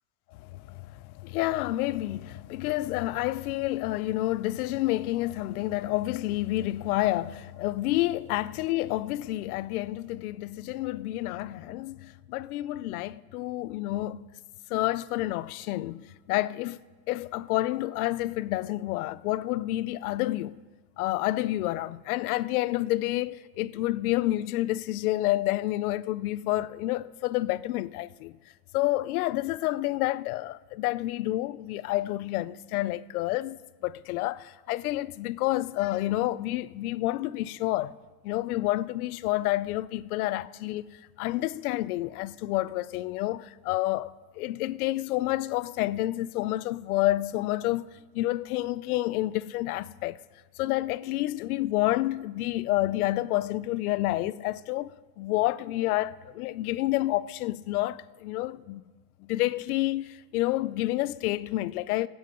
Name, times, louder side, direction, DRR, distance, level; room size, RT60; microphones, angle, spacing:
voice 1, 0.3-14.2 14.7-16.8 17.1-20.5 21.0-28.4 28.7-38.0 38.2-47.9 48.1-50.2 50.6-58.8 59.2-62.1, left 16 dB, 70° left, 0.6 m, -29 dB
25.0 x 8.7 x 3.8 m
supercardioid pair, 170°, 46 cm